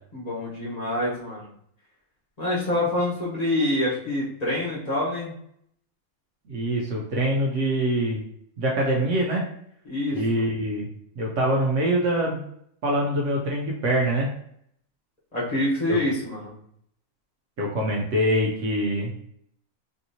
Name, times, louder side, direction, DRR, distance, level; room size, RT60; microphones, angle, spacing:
voice 1, 0.1-1.5 2.4-5.3 9.8-10.5 15.3-16.5, left 1 dB, 30° left, -8 dB, 1.1 m, -26 dB
voice 2, 6.5-8.2 8.6-9.4 10.1-10.9 11.2-12.4 12.8-14.3 15.9-16.0 17.6-19.1, right 1 dB, 65° right, -2 dB, 1.0 m, -24 dB
3.5 x 2.7 x 2.7 m, 0.69 s
omnidirectional pair, 1.5 m